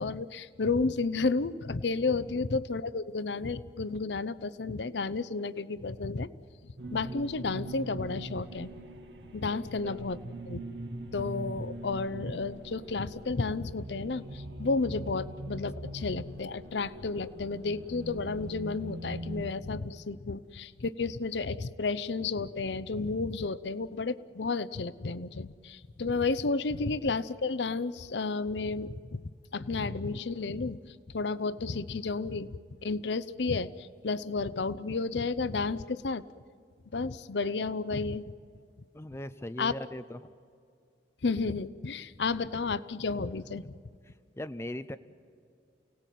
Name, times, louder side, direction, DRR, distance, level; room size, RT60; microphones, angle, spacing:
voice 1, 0.0-6.3 6.9-8.7 9.3-10.2 10.5-10.6 11.1-29.2 29.5-30.8 31.1-36.2 36.9-38.2 39.6-39.7 41.2-43.7, left 3 dB, 70° left, 16 dB, 0.7 m, -32 dB
sound 1, 6.8-19.5, right 1 dB, 75° right, 1.9 m, -41 dB
voice 2, 9.8-10.1 38.9-40.3 44.1-45.0, left 1 dB, 15° left, 11 dB, 0.6 m, -40 dB
29.0 x 18.0 x 9.2 m, 2.3 s
head